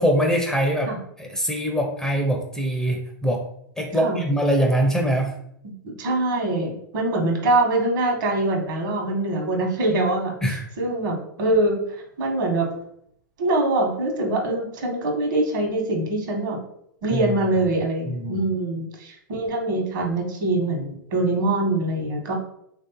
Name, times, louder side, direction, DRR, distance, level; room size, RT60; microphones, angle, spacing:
voice 1, 0.0-3.5 3.8-5.4 10.4-10.7 17.1-17.7 18.1-18.5, equal, 5° left, 2 dB, 0.4 m, -23 dB
voice 2, 5.8-12.7 13.4-16.6 17.0-22.3, right 2 dB, 60° right, 1 dB, 1.1 m, -24 dB
3.2 x 2.6 x 2.8 m, 0.71 s
hypercardioid pair, 110°, 11 cm